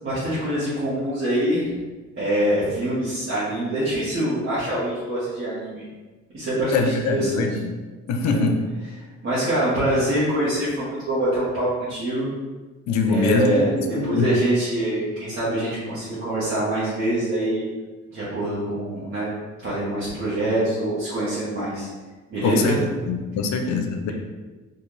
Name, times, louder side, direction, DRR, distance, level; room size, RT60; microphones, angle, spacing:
voice 1, 0.0-1.7 2.2-5.8 6.3-7.6 8.2-8.5 9.2-12.3 13.1-13.7 14.0-17.7 18.1-19.3 19.6-21.9 22.3-22.8, right 1 dB, 45° right, -11 dB, 1.2 m, -24 dB
voice 2, 6.7-7.7 8.1-8.7 12.9-14.3 22.4-22.8 23.1-24.1, left 4 dB, 65° left, 5 dB, 0.5 m, -23 dB
2.9 x 2.6 x 3.8 m, 1.3 s
cardioid pair, 90°, 30 cm